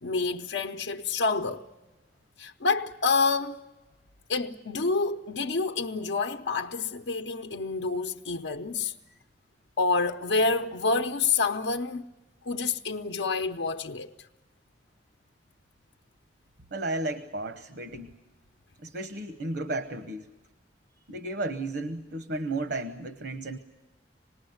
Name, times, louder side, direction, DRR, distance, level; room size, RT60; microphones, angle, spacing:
voice 1, 0.0-1.7 2.4-3.6 4.3-8.9 9.8-12.1 12.4-14.3, left 4 dB, 90° left, 0.8 m, -28 dB
voice 2, 16.7-18.1 18.8-20.3 21.1-23.6, right 2 dB, 70° right, 1.0 m, -33 dB
26.5 x 20.0 x 7.9 m
head